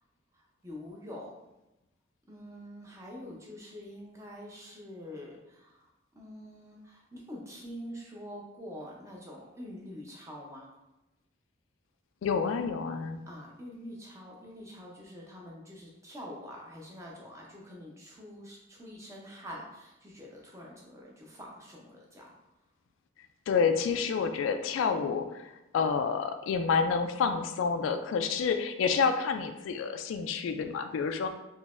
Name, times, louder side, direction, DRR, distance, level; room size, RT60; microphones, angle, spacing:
voice 1, 0.3-1.3 2.3-5.9 6.2-10.7 13.3-22.3, equal, 15° right, -3 dB, 0.6 m, -45 dB
voice 2, 12.2-13.2 23.5-31.3, left 5 dB, 85° left, 8 dB, 0.3 m, -29 dB
3.9 x 2.8 x 2.4 m, 0.96 s
head